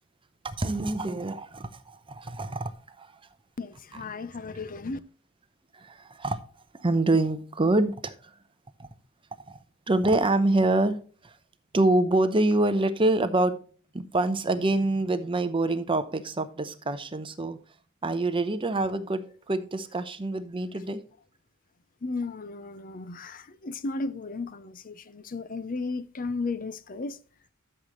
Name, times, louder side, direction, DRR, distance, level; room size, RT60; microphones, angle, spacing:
voice 1, 0.4-2.7 3.0-3.1 3.9-4.0 5.7-6.4 6.7-8.3 9.5-9.6 9.9-11.0 11.2-11.3 11.7-13.6 13.9-17.6 18.0-21.0, right 2 dB, 25° right, 0.8 m, -26 dB
voice 2, 3.6-5.0 22.0-27.2, left 3 dB, 40° left, 0.6 m, -34 dB
12.0 x 6.7 x 3.1 m
head